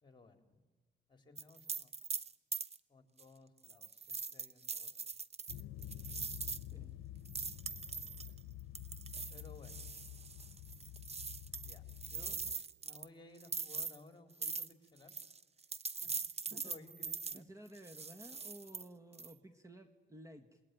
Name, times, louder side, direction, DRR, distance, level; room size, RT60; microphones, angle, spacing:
voice 1, 0.0-0.6 1.1-1.9 2.9-5.0 9.3-10.0 11.6-12.4 12.8-15.1 16.0-16.1 16.4-17.4, left 2 dB, 25° left, 7 dB, 3.5 m, -59 dB
sound 1, 1.4-2.8 3.2-3.3 3.6-6.6 7.3-8.4 8.7-13.1 13.4-14.0 14.4-14.7 15.0-17.4 17.7-18.8 19.1-19.3, right 5 dB, 30° right, 1.0 m, -42 dB
sound 2, 5.5-12.5, left 13 dB, 90° left, 0.7 m, -49 dB
voice 2, 17.3-20.6, right 1 dB, 15° right, 8 dB, 1.7 m, -54 dB
28.0 x 21.0 x 9.3 m, 1.3 s
cardioid pair, 90°, 20 cm